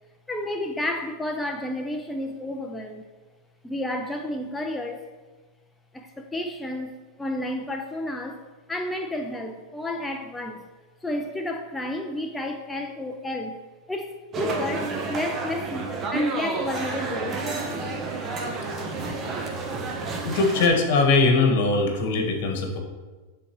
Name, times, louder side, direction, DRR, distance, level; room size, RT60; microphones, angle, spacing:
voice 1, 0.3-3.0 3.6-5.1 5.9-8.4 8.7-10.7 11.0-13.6 13.9-17.4, left 1 dB, 5° left, 3 dB, 0.4 m, -31 dB
sound 1, 14.3-20.7, right 3 dB, 25° right, 0.8 m, -30 dB
voice 2, 20.2-22.8, left 3 dB, 65° left, 3 dB, 1.2 m, -21 dB
9.9 x 3.8 x 3.0 m, 1.3 s
supercardioid pair, 130°, 0 cm